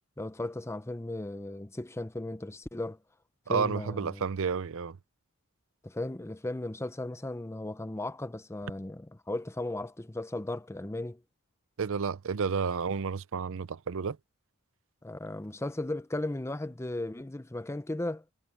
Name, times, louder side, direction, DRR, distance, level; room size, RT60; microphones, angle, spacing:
voice 1, 0.2-3.0 3.5-4.2 5.8-11.2 15.0-18.2, left 1 dB, 10° left, 0.6 m, -36 dB
voice 2, 3.5-5.0 11.8-14.2, right 5 dB, 65° right, 0.6 m, -31 dB
head